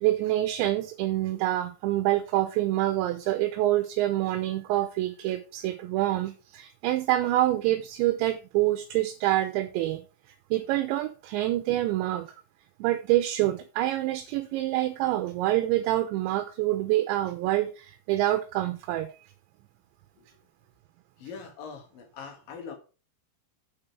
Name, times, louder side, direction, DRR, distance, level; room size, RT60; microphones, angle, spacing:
voice 1, 0.0-10.0 10.3-12.3 12.8-19.2, right 15 dB, 80° right, 2.9 m, -26 dB
voice 2, 21.2-22.8, left 6 dB, 60° left, 2.7 m, -42 dB
8.8 x 5.2 x 5.7 m
omnidirectional pair, 5.5 m